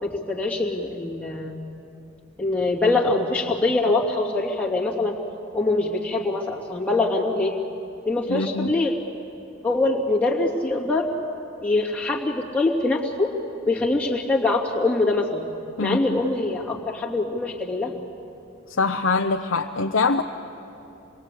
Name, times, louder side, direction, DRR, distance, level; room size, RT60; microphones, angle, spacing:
voice 1, 0.0-1.6 2.4-5.2 5.5-7.5 8.1-8.9 9.6-11.1 11.6-13.3 13.7-15.5 15.8-18.0, left 2 dB, 10° left, -4 dB, 2.7 m, -23 dB
voice 2, 8.3-8.7 15.8-16.0 18.8-20.2, left 4 dB, 70° left, 3 dB, 0.8 m, -23 dB
27.5 x 21.5 x 8.5 m, 2.8 s
head